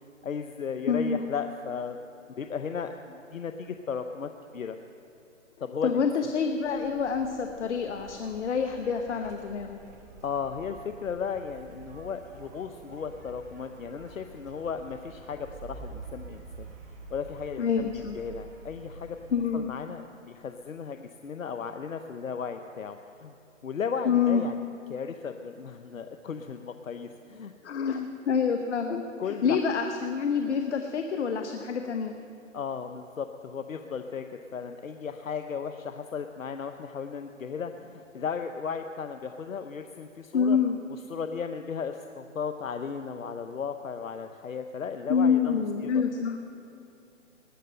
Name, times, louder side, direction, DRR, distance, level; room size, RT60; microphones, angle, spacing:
voice 1, 0.2-2.0 2.3-4.8 5.6-6.0 10.2-16.7 17.1-19.2 19.5-23.3 23.6-27.5 29.2-29.6 32.5-40.6 41.1-45.9, left 6 dB, 85° left, 7 dB, 0.8 m, -35 dB
voice 2, 0.9-1.2 5.8-9.8 17.6-18.1 19.3-19.7 24.0-24.5 27.6-32.1 40.3-40.8 45.1-46.4, left 6 dB, 60° left, 6 dB, 1.0 m, -27 dB
sound 1, 6.7-19.6, right 4 dB, 15° right, 0.5 m, -48 dB
19.5 x 6.5 x 7.7 m, 2.7 s
figure-of-eight pair, 135°, 39 cm